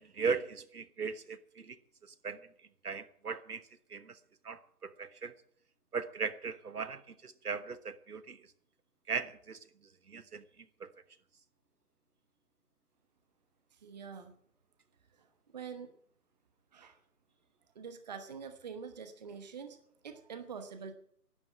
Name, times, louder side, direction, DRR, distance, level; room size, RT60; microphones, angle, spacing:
voice 1, 0.0-1.8 2.2-2.4 2.8-3.6 3.9-4.2 4.4-5.3 5.9-8.4 9.1-9.6 10.1-10.4 10.8-10.9, right 5 dB, 70° right, 1.3 m, -38 dB
voice 2, 13.8-14.3 15.2-15.3 15.5-15.9 16.7-17.0 17.7-19.8 20.0-20.9, right 6 dB, 25° right, 1.1 m, -45 dB
11.5 x 11.0 x 8.6 m
figure-of-eight pair, 150°, 47 cm